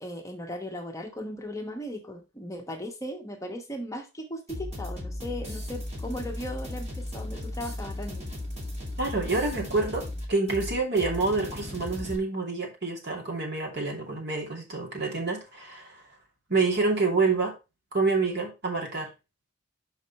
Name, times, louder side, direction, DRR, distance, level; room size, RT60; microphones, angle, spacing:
voice 1, 0.0-8.3, left 1 dB, 15° left, 1.1 m, -37 dB
sound 1, 4.5-12.2, left 1 dB, 35° right, 2.4 m, -36 dB
voice 2, 9.0-16.0 16.5-17.6 17.9-19.1, right 3 dB, 60° right, 2.6 m, -27 dB
6.3 x 5.2 x 4.1 m
head